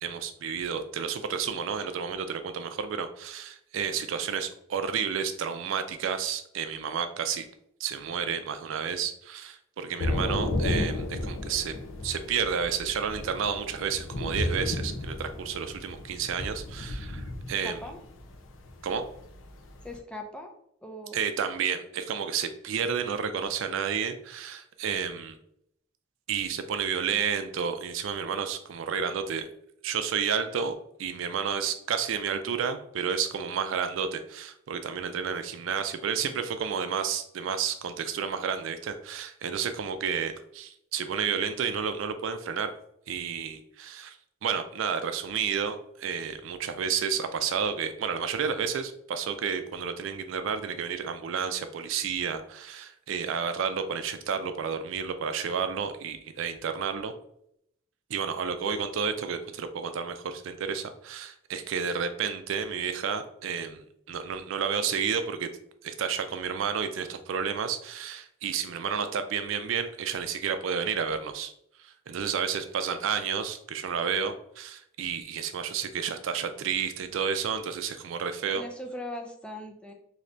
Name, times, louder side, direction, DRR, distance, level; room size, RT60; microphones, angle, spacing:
voice 1, 0.0-7.5 7.8-11.7 12.0-17.8 18.8-19.0 21.1-25.4 26.3-29.5 29.8-30.7 31.0-42.7 43.1-44.2 44.4-57.1 58.1-65.5 65.8-71.5 71.8-78.6, right 7 dB, 70° right, 9 dB, 0.4 m, -31 dB
Thunder / Rain, 10.0-20.0, left 2 dB, 70° left, 0.5 m, -33 dB
voice 2, 17.6-18.0 19.8-20.5 20.8-21.2 78.6-79.9, left 1 dB, 5° left, 3 dB, 0.4 m, -39 dB
2.7 x 2.6 x 3.2 m, 0.72 s
head